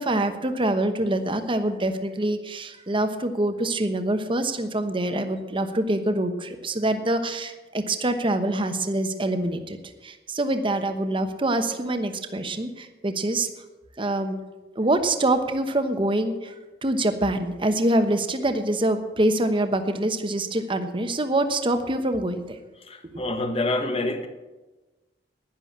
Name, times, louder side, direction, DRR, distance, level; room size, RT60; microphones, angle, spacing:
voice 1, 0.0-9.8 10.0-13.5 14.0-14.4 14.7-16.5 16.8-22.6 23.0-23.2, right 1 dB, 30° right, 8 dB, 1.0 m, -25 dB
voice 2, 22.8-24.3, left 2 dB, 35° left, 7 dB, 1.2 m, -27 dB
11.0 x 10.5 x 7.4 m, 1.2 s
head